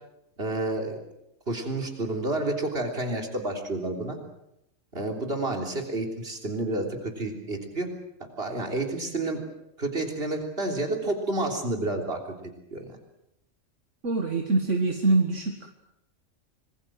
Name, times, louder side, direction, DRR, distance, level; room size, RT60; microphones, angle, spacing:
voice 1, 0.4-1.0 1.5-4.2 4.9-7.9 8.4-9.4 9.8-12.2 12.7-12.8, right 2 dB, 50° right, 3 dB, 3.8 m, -29 dB
voice 2, 14.0-15.7, right 3 dB, 70° right, 4 dB, 2.2 m, -24 dB
26.0 x 21.0 x 7.6 m, 0.83 s
omnidirectional pair, 1.3 m